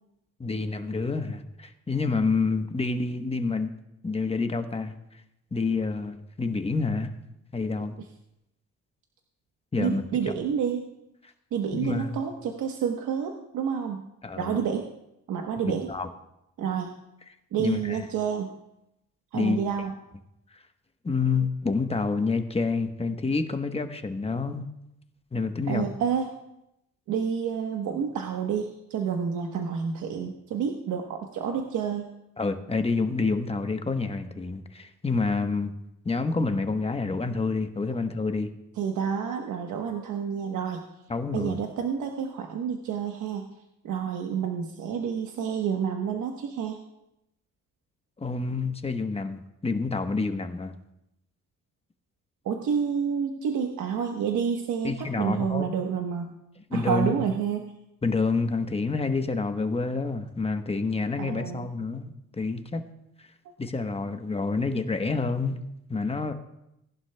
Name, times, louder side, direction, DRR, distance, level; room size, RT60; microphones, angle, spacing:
voice 1, 0.4-3.7 4.0-5.0 5.5-7.1 7.5-8.0 9.7-10.3 11.7-12.2 14.2-14.6 15.6-16.1 17.6-18.0 19.3-19.6 21.0-24.7 25.3-25.9 32.4-35.7 36.0-38.5 41.1-41.6 48.2-50.7 54.8-55.7 56.7-57.2 58.0-62.8 63.6-65.6 65.9-66.3, left 4 dB, 20° left, 7 dB, 1.0 m, -28 dB
voice 2, 9.8-10.9 11.5-14.1 14.4-14.9 15.3-15.9 16.6-17.0 17.5-18.5 19.3-19.9 25.7-26.3 27.1-32.1 38.8-40.8 41.3-43.5 43.8-46.8 52.4-56.4 56.7-57.7 61.2-61.7, right 7 dB, 80° right, 3 dB, 1.1 m, -29 dB
18.5 x 11.0 x 2.2 m, 0.84 s
cardioid pair, 90°, 30 cm